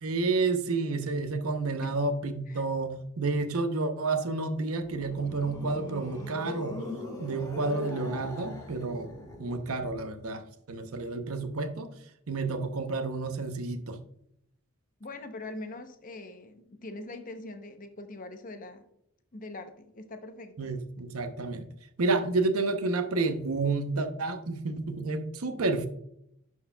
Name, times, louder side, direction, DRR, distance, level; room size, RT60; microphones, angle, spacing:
voice 1, 0.0-6.8 7.2-10.4 10.7-11.9 12.3-14.0 20.6-21.6 22.0-25.9, right 3 dB, 85° right, 8 dB, 0.7 m, -30 dB
sound 1, 4.8-10.0, left 1 dB, 15° left, 1.2 m, -41 dB
voice 2, 15.0-18.8 19.3-20.7, left 2 dB, 40° left, 7 dB, 0.7 m, -42 dB
11.0 x 4.7 x 2.2 m, 0.75 s
head